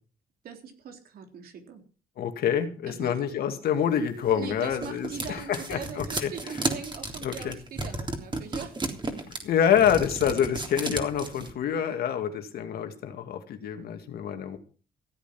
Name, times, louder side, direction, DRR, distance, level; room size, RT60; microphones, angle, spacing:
voice 1, 0.4-1.8 2.9-3.2 4.2-8.8, right 6 dB, 75° right, 5 dB, 3.6 m, -41 dB
voice 2, 2.2-6.3 7.2-7.5 9.4-14.6, left 8 dB, 75° left, 6 dB, 2.4 m, -27 dB
sound 1, 4.2-11.5, right 2 dB, 30° right, 3.5 m, -33 dB
16.0 x 8.7 x 6.1 m, 0.38 s
cardioid pair, 70°, 16 cm